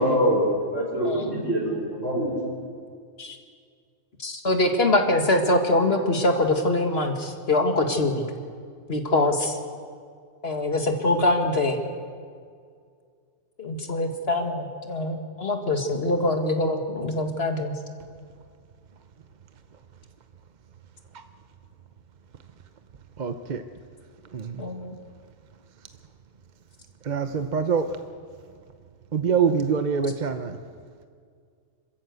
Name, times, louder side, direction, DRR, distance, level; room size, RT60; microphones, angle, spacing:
voice 1, 0.0-2.4, equal, 75° right, -3 dB, 5.4 m, -24 dB
voice 2, 4.2-8.2 8.9-9.6 10.4-11.8 13.6-17.7 24.6-25.0, left 2 dB, 50° left, 4 dB, 2.0 m, -24 dB
voice 3, 23.2-23.6 24.3-24.6 27.0-27.9 29.1-30.6, right 6 dB, 40° right, 8 dB, 0.8 m, -25 dB
26.5 x 13.5 x 8.1 m, 2.1 s
omnidirectional pair, 1.3 m